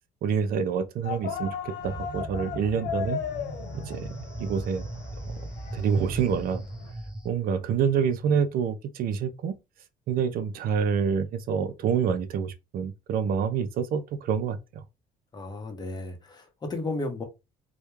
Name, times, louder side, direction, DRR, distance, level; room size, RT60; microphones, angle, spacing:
voice 1, 0.2-3.2 3.7-4.8 5.7-6.6 7.2-9.6 10.1-14.8, right 7 dB, 60° right, 0.4 m, -27 dB
sound 1, 1.0-6.9, left 8 dB, 80° left, 0.6 m, -37 dB
sound 2, 1.8-7.3, right 1 dB, 5° right, 0.5 m, -38 dB
voice 2, 15.3-17.2, left 2 dB, 25° left, 0.7 m, -34 dB
2.2 x 2.1 x 3.0 m
cardioid pair, 110°, 17 cm